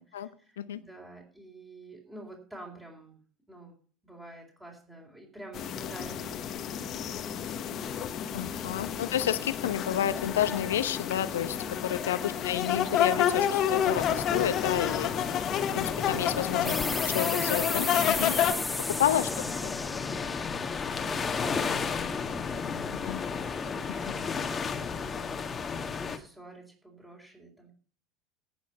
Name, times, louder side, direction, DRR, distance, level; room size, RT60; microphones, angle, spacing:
voice 1, 0.0-3.2 3.5-3.8 4.0-8.3 8.7-9.0 12.0-12.5 16.4-17.1 19.3-19.7 20.9-27.7, right 1 dB, 10° right, -2 dB, 4.1 m, -49 dB
sound 1, 5.5-18.5, left 9 dB, 45° left, 1.4 m, -30 dB
voice 2, 8.3-11.6 11.8-15.2 15.7-16.7 17.1-18.3 18.9-19.3 23.0-23.2 24.1-24.2, left 10 dB, 75° left, 13 dB, 0.9 m, -30 dB
sound 2, 13.9-26.2, left 5 dB, 30° left, 1.7 m, -33 dB
sound 3, 16.6-21.9, left 2 dB, 10° left, 0.7 m, -35 dB
18.0 x 6.3 x 5.8 m, 0.43 s
figure-of-eight pair, 70°, 0 cm